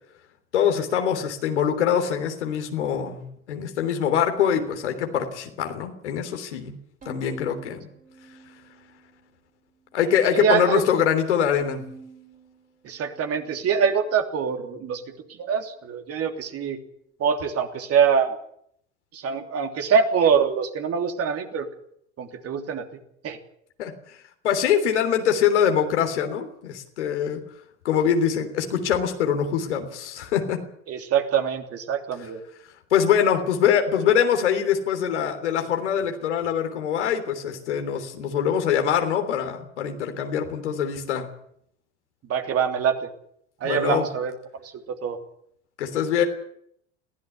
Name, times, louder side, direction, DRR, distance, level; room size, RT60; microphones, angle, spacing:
voice 1, 0.5-6.8 7.0-7.9 9.9-11.8 23.8-24.2 24.4-27.4 27.8-30.6 32.9-41.3 43.6-44.1 45.8-46.2, left 8 dB, 75° left, 5 dB, 3.4 m, -23 dB
Bowed string instrument, 7.0-9.4 9.8-10.6 11.6-14.1, right 3 dB, 25° right, 4.6 m, -47 dB
voice 2, 10.3-10.8 12.8-15.0 15.4-16.8 17.2-18.4 19.1-21.7 22.2-22.8 23.2-23.4 30.9-32.4 42.3-42.9 43.6-44.3 44.6-45.2, right 7 dB, 45° right, 4 dB, 3.1 m, -24 dB
22.0 x 16.0 x 8.3 m, 0.71 s
hypercardioid pair, 70°, 34 cm